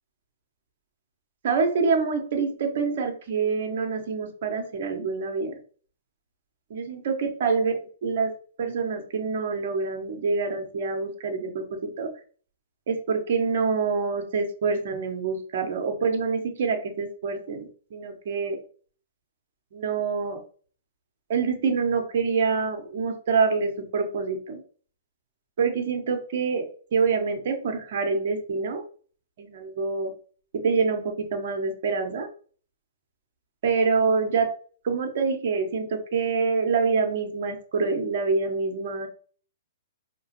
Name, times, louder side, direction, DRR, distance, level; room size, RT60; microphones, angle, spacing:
voice 1, 1.4-5.5 6.7-7.8 8.0-8.3 8.6-12.1 12.9-18.6 19.7-20.4 21.3-24.6 25.6-28.8 29.4-30.1 30.5-32.3 33.6-34.5 34.8-39.1, right 5 dB, 55° right, 5 dB, 1.0 m, -26 dB
4.7 x 3.0 x 3.0 m, 0.43 s
hypercardioid pair, 120°, 0 cm